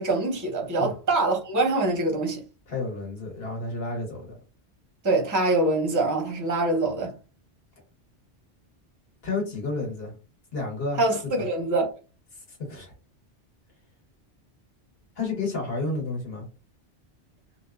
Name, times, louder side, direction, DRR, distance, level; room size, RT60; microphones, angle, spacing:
voice 1, 0.0-2.4 5.0-7.1 11.0-12.0, right 2 dB, 20° right, 0.6 m, -24 dB
voice 2, 2.7-4.4 9.2-10.1 10.5-11.0 11.3-11.4 12.5-12.9 15.2-16.5, left 3 dB, 60° left, 1.4 m, -31 dB
2.7 x 2.4 x 2.3 m
omnidirectional pair, 1.2 m